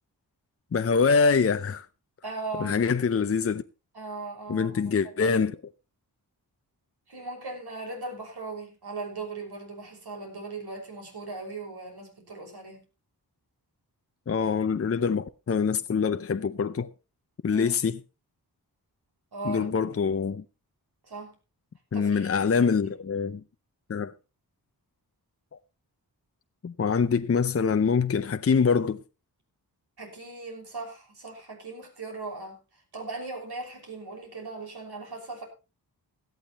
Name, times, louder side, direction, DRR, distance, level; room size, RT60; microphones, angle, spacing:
voice 1, 0.7-1.9 2.6-3.6 4.5-5.6 14.3-16.9 17.4-18.0 19.4-20.4 21.9-23.4 23.9-24.1 26.6-29.0, left 5 dB, 35° left, 0.7 m, -24 dB
voice 2, 2.2-2.8 3.9-5.4 7.1-12.8 17.5-17.8 19.3-19.7 21.1-21.3 21.9-22.6 30.0-32.6 32.9-35.4, right 3 dB, 75° right, 5.9 m, -38 dB
17.5 x 12.0 x 3.0 m
wide cardioid pair, 80°, 39 cm